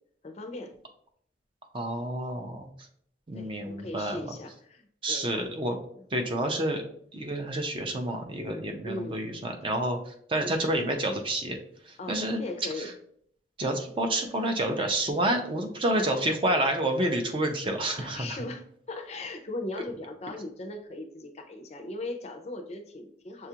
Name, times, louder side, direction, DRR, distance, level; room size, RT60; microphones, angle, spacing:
voice 1, 0.2-0.7 3.3-5.5 8.8-9.2 10.4-10.6 12.0-12.9 15.9-16.1 18.0-23.5, left 2 dB, 35° left, 5 dB, 0.4 m, -38 dB
voice 2, 1.7-2.7 3.3-4.3 5.0-5.8 6.1-6.8 7.1-11.6 11.8-12.4 12.8-12.9 13.6-18.4, right 1 dB, 30° right, 5 dB, 0.4 m, -29 dB
6.6 x 2.3 x 2.8 m, 0.65 s
head